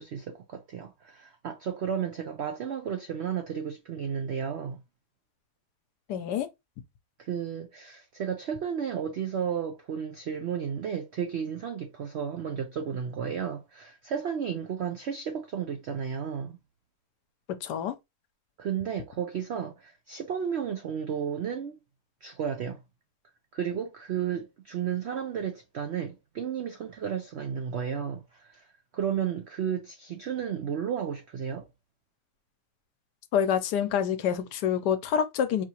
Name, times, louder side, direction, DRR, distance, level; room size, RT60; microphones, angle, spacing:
voice 1, 0.0-4.8 7.2-16.6 18.6-21.7 22.2-22.8 23.5-28.7 28.9-31.6, right 8 dB, 75° right, 0.6 m, -33 dB
voice 2, 6.1-6.5 17.6-17.9 33.3-35.6, left 8 dB, 80° left, 1.2 m, -27 dB
4.7 x 2.8 x 2.8 m
omnidirectional pair, 1.8 m